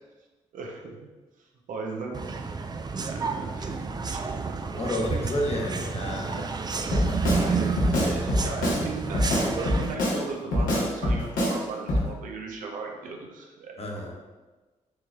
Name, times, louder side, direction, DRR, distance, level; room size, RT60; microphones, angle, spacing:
voice 1, 0.5-1.0 1.7-2.4 3.0-3.8 4.1-4.8 7.3-14.1, right 3 dB, 75° right, 1 dB, 0.7 m, -37 dB
sound 1, 2.1-10.0, right 4 dB, 30° right, 0.4 m, -30 dB
voice 2, 4.8-6.5 13.8-14.1, left 1 dB, 45° left, 0 dB, 0.9 m, -30 dB
Drum kit, 6.9-7.5 7.8-8.8 9.1-10.2 10.5-11.6 11.9-12.1, left 1 dB, 80° left, 1.0 m, -24 dB
4.5 x 3.0 x 2.3 m, 1.2 s
supercardioid pair, 45°, 14 cm